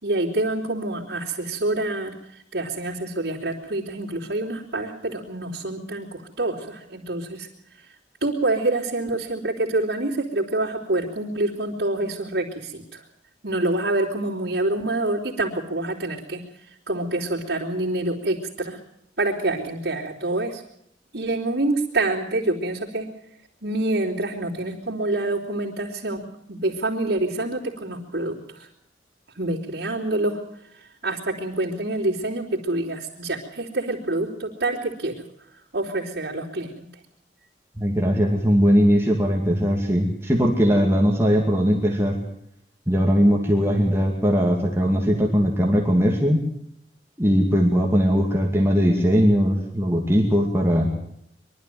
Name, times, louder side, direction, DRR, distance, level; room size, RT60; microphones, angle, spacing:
voice 1, 0.0-7.9 8.2-13.0 13.4-18.8 19.2-20.6 21.1-23.1 23.6-28.7 29.3-30.4 30.7-36.9, right 2 dB, 65° right, -7 dB, 3.5 m, -27 dB
voice 2, 37.8-42.2 42.9-46.4 47.2-50.9, equal, 15° right, 0 dB, 2.4 m, -20 dB
23.5 x 13.0 x 9.3 m, 0.72 s
head